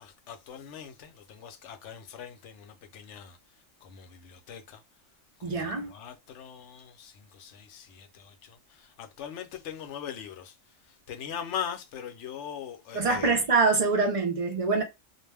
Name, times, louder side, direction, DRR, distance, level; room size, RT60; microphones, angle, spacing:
voice 1, 0.0-3.4 3.8-4.8 5.4-10.6 10.8-13.4, left 8 dB, 75° left, 0.9 m, -41 dB
voice 2, 5.4-5.9 12.9-14.8, right 4 dB, 35° right, 0.6 m, -25 dB
2.4 x 2.1 x 3.3 m
omnidirectional pair, 1.3 m